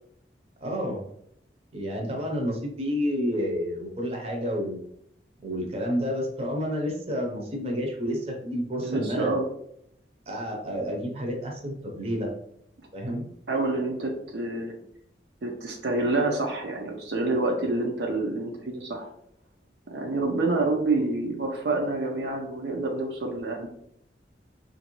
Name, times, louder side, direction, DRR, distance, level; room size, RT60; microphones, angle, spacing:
voice 1, 0.6-1.1 1.7-4.8 5.4-9.3 10.3-12.3 12.9-13.3, equal, 35° right, 0 dB, 0.6 m, -30 dB
voice 2, 8.8-9.4 13.5-14.7 15.4-19.1 19.9-23.7, right 2 dB, 75° right, 2 dB, 0.5 m, -27 dB
2.9 x 2.5 x 2.9 m, 0.72 s
head